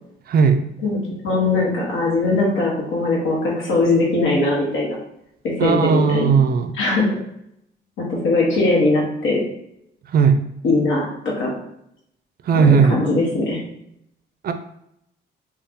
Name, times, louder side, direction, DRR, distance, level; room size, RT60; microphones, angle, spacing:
voice 1, 0.3-0.6 5.6-6.7 10.1-10.4 12.5-13.0 14.4-14.5, right 5 dB, 50° right, 8 dB, 0.4 m, -16 dB
voice 2, 0.8-4.9 5.4-6.3 6.7-7.1 8.0-9.4 10.6-11.1 11.4-11.5 12.5-13.6, left 2 dB, 75° left, -2 dB, 1.1 m, -20 dB
2.7 x 2.3 x 3.5 m, 0.76 s
cardioid pair, 90°, 20 cm